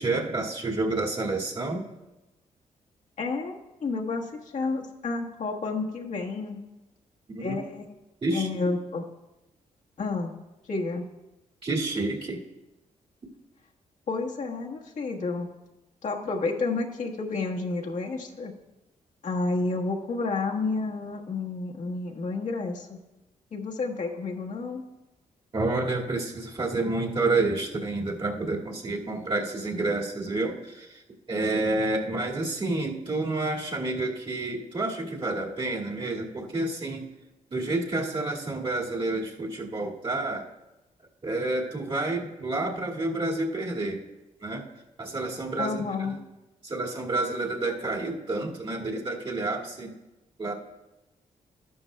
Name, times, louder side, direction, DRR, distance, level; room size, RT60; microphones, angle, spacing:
voice 1, 0.0-1.9 7.3-7.6 8.2-8.7 11.6-12.4 25.5-37.1 37.5-40.5 41.2-44.0 44.4-44.7 45.0-46.2 46.6-50.0 50.4-50.5, right 2 dB, 40° right, -2 dB, 2.2 m, -29 dB
voice 2, 3.2-6.6 7.4-7.8 8.3-9.0 10.0-10.3 10.7-11.0 14.1-15.5 16.0-18.5 19.2-23.0 23.5-24.8 45.6-46.1, left 3 dB, 60° left, -1 dB, 1.4 m, -30 dB
12.5 x 11.5 x 2.3 m, 1.0 s
cardioid pair, 70°, 14 cm